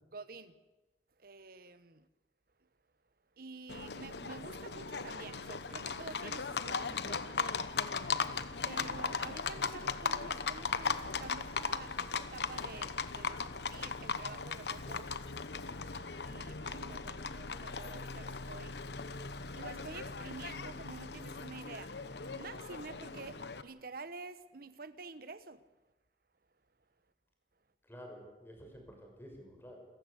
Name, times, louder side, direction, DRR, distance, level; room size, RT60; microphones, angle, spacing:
voice 1, 0.1-0.5 1.2-2.1 3.4-7.4 8.6-15.1 16.2-18.8 19.5-25.6, right 3 dB, 55° right, 1.2 m, -49 dB
Livestock farm animals working animals, 3.7-23.6, left 5 dB, 70° left, 1.1 m, -38 dB
voice 2, 27.8-29.8, equal, 15° left, 6.1 m, -51 dB
29.0 x 15.0 x 8.3 m
head